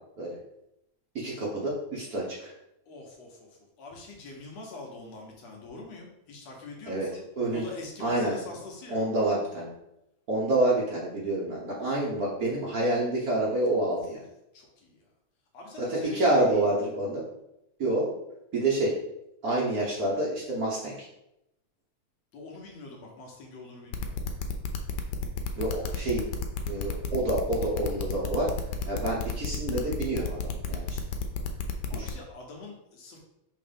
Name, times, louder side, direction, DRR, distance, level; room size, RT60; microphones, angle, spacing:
voice 1, 1.1-2.5 6.9-7.1 7.4-7.6 8.0-8.4 8.9-9.7 10.3-14.2 15.8-17.2 17.8-18.1 18.5-19.0 19.4-21.1 25.6-26.3 26.7-28.5 28.9-31.0 31.9-32.1, right 2 dB, 90° right, -5 dB, 0.8 m, -28 dB
voice 2, 2.9-9.0 14.0-14.2 14.5-15.0 15.5-16.8 22.3-24.2 31.9-33.2, left 3 dB, 65° left, -1 dB, 2.2 m, -44 dB
sound 1, 23.9-32.1, left 7 dB, 90° left, 2.2 m, -32 dB
6.3 x 3.3 x 5.1 m, 0.85 s
omnidirectional pair, 3.5 m